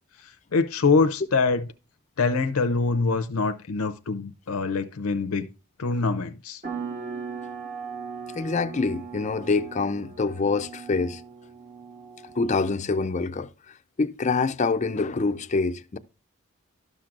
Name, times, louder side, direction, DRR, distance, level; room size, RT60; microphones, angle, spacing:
voice 1, 0.5-1.7 2.2-5.5 5.8-6.6, left 4 dB, 85° left, 0.6 m, -24 dB
sound 1, 6.6-12.8, right 5 dB, 35° right, 1.1 m, -38 dB
voice 2, 8.3-11.2 12.4-13.5 14.0-16.0, left 4 dB, 35° left, 0.4 m, -25 dB
12.5 x 5.9 x 2.5 m
head